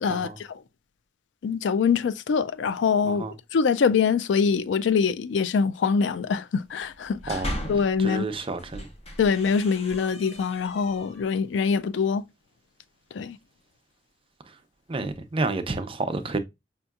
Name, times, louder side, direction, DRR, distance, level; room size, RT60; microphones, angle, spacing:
voice 1, 0.0-0.6 1.4-3.2 3.5-7.4 7.7-8.2 9.2-12.2 13.1-13.4, left 5 dB, 85° left, 0.4 m, -24 dB
sound 1, 6.9-8.0 8.5-11.3, equal, 35° left, 1.0 m, -37 dB
voice 2, 8.0-8.9 14.9-16.4, right 3 dB, 30° right, 0.5 m, -30 dB
5.2 x 2.8 x 2.3 m
head